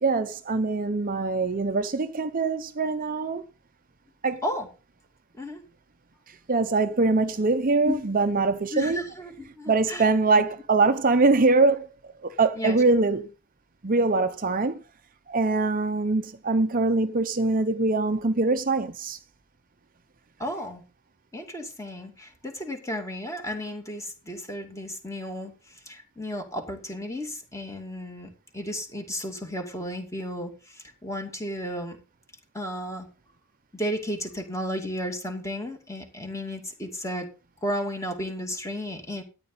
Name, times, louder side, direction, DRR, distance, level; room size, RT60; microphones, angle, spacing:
voice 1, 0.0-3.4 4.2-4.4 6.5-9.0 9.7-11.9 12.2-13.3 13.8-14.8 15.3-19.2, right 3 dB, 40° right, 0.7 m, -23 dB
voice 2, 8.7-10.1 12.6-12.8 20.4-20.8 21.3-32.0 32.5-33.1 33.7-37.3 37.6-39.2, equal, 15° left, 2.5 m, -33 dB
13.5 x 9.8 x 4.0 m
head